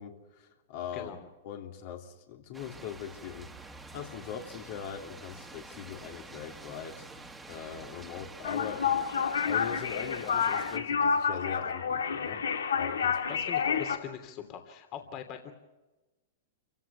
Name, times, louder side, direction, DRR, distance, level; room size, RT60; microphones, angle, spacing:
voice 1, 0.0-1.2 1.4-7.1 7.5-12.5 12.7-13.4, left 8 dB, 55° left, 3 dB, 3.1 m, -41 dB
voice 2, 0.9-1.3 13.3-15.5, left 9 dB, 40° left, 7 dB, 3.0 m, -42 dB
sound 1, 2.5-10.8, right 3 dB, 10° right, 2.0 m, -48 dB
sound 2, 8.4-14.0, left 6 dB, 85° left, 2.2 m, -29 dB
28.0 x 16.5 x 7.0 m, 1.1 s
hypercardioid pair, 120°, 0 cm